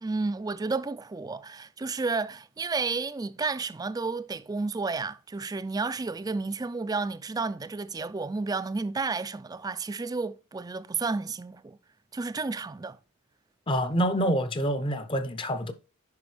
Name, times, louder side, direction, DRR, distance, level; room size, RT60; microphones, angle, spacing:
voice 1, 0.0-11.8 12.1-13.0, right 4 dB, 15° right, 0.3 m, -31 dB
voice 2, 13.7-15.7, equal, 25° left, 0.6 m, -27 dB
9.3 x 5.6 x 3.2 m
head